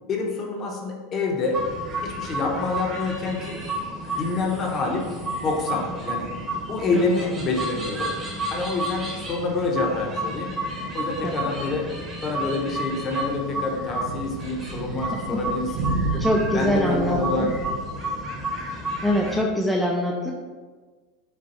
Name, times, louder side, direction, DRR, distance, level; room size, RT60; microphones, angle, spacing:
voice 1, 0.1-1.6 2.0-3.6 4.2-5.1 5.4-6.3 6.7-8.1 8.5-10.5 10.9-11.9 12.2-16.3 16.5-17.5, left 3 dB, 30° left, 1 dB, 0.7 m, -27 dB
sound 1, 1.5-19.4, right 1 dB, 25° right, 1.0 m, -32 dB
sound 2, 12.3-17.7, right 3 dB, 65° right, 0.8 m, -32 dB
voice 2, 16.2-17.5 19.0-20.3, equal, ahead, -2 dB, 0.4 m, -24 dB
5.2 x 2.3 x 4.2 m, 1.4 s
supercardioid pair, 145°, 0 cm